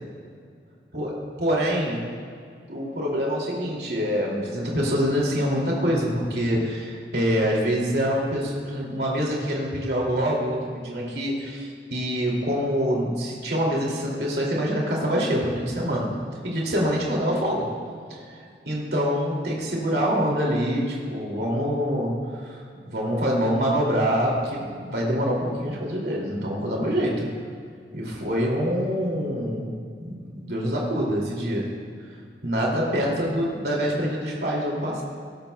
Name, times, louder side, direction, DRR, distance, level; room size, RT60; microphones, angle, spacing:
voice 1, 1.4-2.0 2.7-16.1 16.4-17.7 18.1-22.6 22.8-27.3 27.9-29.7 30.0-31.7 32.4-35.0, equal, 70° right, -2 dB, 2.4 m, -25 dB
19.5 x 12.0 x 2.2 m, 2.2 s
head